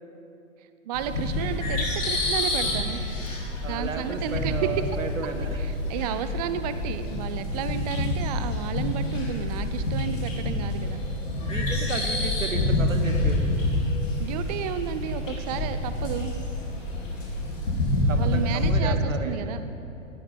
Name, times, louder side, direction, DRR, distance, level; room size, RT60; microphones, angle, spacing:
sound 1, 0.9-18.7, left 2 dB, 75° left, 3.0 m, -28 dB
voice 1, 0.9-3.0 3.7-4.5 5.3-11.0 14.2-16.3 18.2-19.6, right 9 dB, 35° right, 11 dB, 0.4 m, -32 dB
voice 2, 3.6-5.6 10.8-11.0 11.4-13.5 18.1-19.5, right 4 dB, 90° right, 7 dB, 1.1 m, -34 dB
17.0 x 9.2 x 3.6 m, 2.8 s
hypercardioid pair, 115°, 38 cm